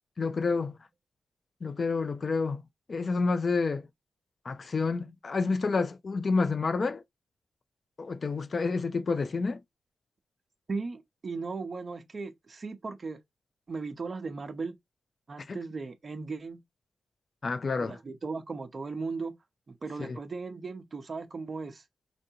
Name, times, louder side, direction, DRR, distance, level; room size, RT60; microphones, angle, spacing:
voice 1, 0.2-0.8 1.6-2.6 2.9-3.9 4.4-7.0 8.0-9.6 15.5-15.6 17.4-18.0 20.0-20.2, left 4 dB, 45° left, 0.4 m, -29 dB
voice 2, 10.7-13.2 13.7-14.8 15.3-16.6 17.8-19.4 19.7-21.8, right 4 dB, 40° right, 0.7 m, -37 dB
4.5 x 2.6 x 2.8 m
wide cardioid pair, 110°, 0 cm